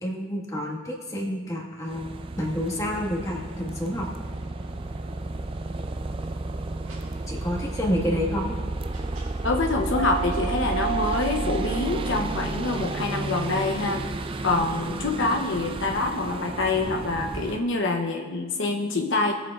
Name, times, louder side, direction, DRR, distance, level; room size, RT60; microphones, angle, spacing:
voice 1, 0.0-2.0 2.4-4.1 7.3-8.5, equal, 15° left, -2 dB, 1.5 m, -28 dB
sound 1, 1.9-17.6, right 2 dB, 25° right, 0.4 m, -32 dB
sound 2, 2.5-17.4, right 10 dB, 90° right, 2.0 m, -40 dB
voice 2, 9.4-14.0 14.4-19.3, left 3 dB, 65° left, 2 dB, 0.8 m, -26 dB
20.5 x 7.5 x 2.4 m, 1.4 s
head